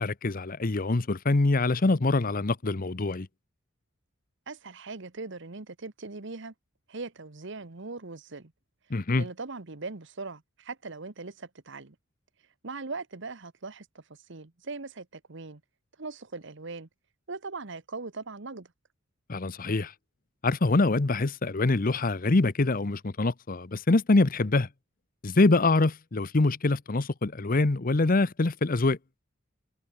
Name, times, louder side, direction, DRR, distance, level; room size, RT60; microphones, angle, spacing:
voice 1, 0.0-3.3 8.9-9.3 19.3-19.9 20.4-24.7 25.2-29.0, left 2 dB, 45° left, 0.8 m, -24 dB
voice 2, 4.5-6.5 6.9-8.5 9.1-11.9 12.6-15.6 16.0-16.9 17.3-18.7, right 3 dB, 60° right, 1.3 m, -40 dB
head